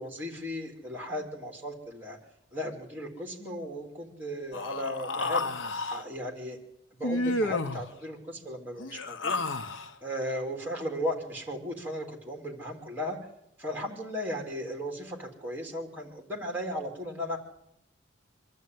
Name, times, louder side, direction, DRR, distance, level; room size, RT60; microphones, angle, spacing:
voice 1, 0.0-2.2 2.5-5.5 5.9-6.6 7.0-9.4 10.0-13.2 13.6-17.4, equal, 10° right, 2 dB, 3.4 m, -36 dB
Human voice, 4.5-6.0 7.0-7.9 8.8-9.9, left 2 dB, 70° left, 1.0 m, -31 dB
24.5 x 12.5 x 9.4 m, 0.80 s
head